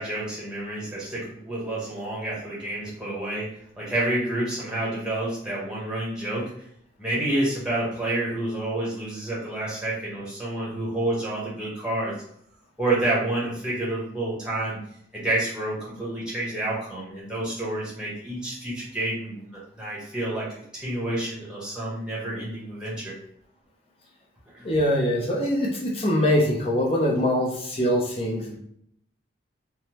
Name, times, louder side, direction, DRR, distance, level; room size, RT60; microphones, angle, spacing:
voice 1, 0.0-3.4 3.8-6.4 7.0-12.1 12.8-14.8 15.1-20.5 20.7-23.1 24.5-24.7, right 1 dB, 5° right, -7 dB, 0.9 m, -29 dB
voice 2, 24.6-28.6, equal, 30° left, -2 dB, 0.6 m, -23 dB
3.3 x 2.0 x 2.9 m, 0.67 s
head